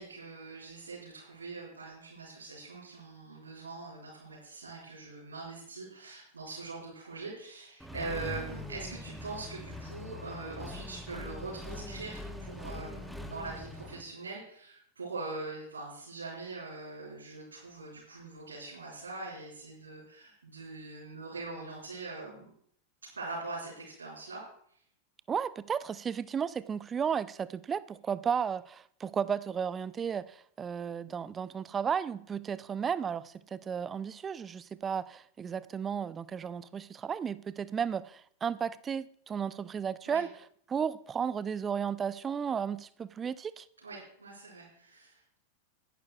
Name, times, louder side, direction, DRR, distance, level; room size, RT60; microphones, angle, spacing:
voice 1, 0.0-22.5 23.1-24.8 40.0-40.2 43.8-45.4, right 3 dB, 75° right, 5.0 m, -42 dB
Accelerating revving vroom, 7.8-14.0, left 2 dB, ahead, 1.1 m, -42 dB
voice 2, 25.3-40.3 40.7-43.7, right 7 dB, 20° right, 0.4 m, -34 dB
20.5 x 11.0 x 2.3 m
figure-of-eight pair, 90°, 0 cm